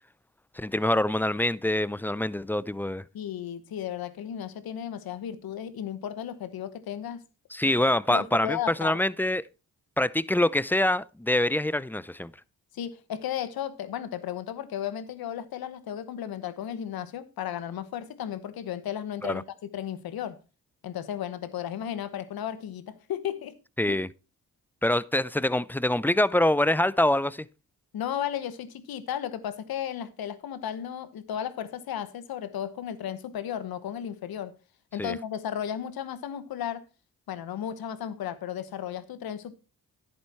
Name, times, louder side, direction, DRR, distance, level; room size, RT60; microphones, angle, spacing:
voice 1, 0.6-3.0 7.5-9.4 10.0-12.3 19.2-19.4 23.8-24.1 24.8-27.5 35.0-35.2, left 1 dB, 5° left, 0.5 m, -25 dB
voice 2, 3.1-7.2 7.8-8.9 12.7-20.4 20.8-23.5 23.9-24.0 27.9-34.5 34.9-36.8 37.3-39.5, left 10 dB, 85° left, 1.1 m, -34 dB
11.0 x 7.9 x 4.3 m
cardioid pair, 60°, 35 cm